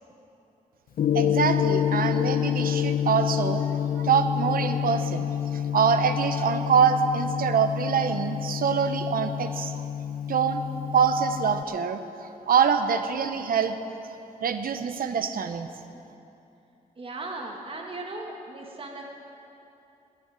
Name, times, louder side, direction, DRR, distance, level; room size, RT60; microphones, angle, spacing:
Gong, 1.0-11.6, left 9 dB, 90° left, 0.5 m, -28 dB
voice 1, 1.1-3.6 3.9-5.2 5.7-9.7 10.3-10.6 10.9-12.0 12.5-13.8 14.4-15.7, right 6 dB, 85° right, 9 dB, 0.9 m, -24 dB
voice 2, 17.0-19.0, right 2 dB, 40° right, 0 dB, 1.7 m, -37 dB
21.0 x 7.1 x 9.0 m, 2.8 s
wide cardioid pair, 125°, 15 cm